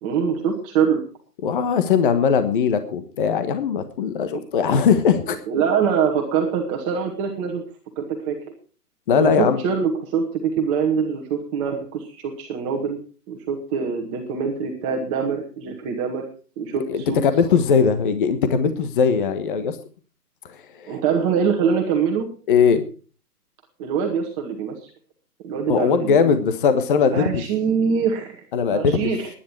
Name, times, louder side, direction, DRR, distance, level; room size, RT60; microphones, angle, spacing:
voice 1, 0.0-1.0 4.3-4.8 5.5-7.6 8.0-8.4 9.1-13.0 13.3-16.3 16.6-17.2 20.9-22.3 23.8-24.9 25.4-26.3 27.1-28.4 28.7-29.3, right 6 dB, 20° right, 1 dB, 1.9 m, -24 dB
voice 2, 1.4-5.4 9.1-9.6 16.9-19.8 20.8-20.9 22.5-22.8 25.7-27.4 28.5-29.1, left 6 dB, 35° left, 10 dB, 1.4 m, -19 dB
19.0 x 10.5 x 4.6 m, 0.38 s
hypercardioid pair, 160°, 47 cm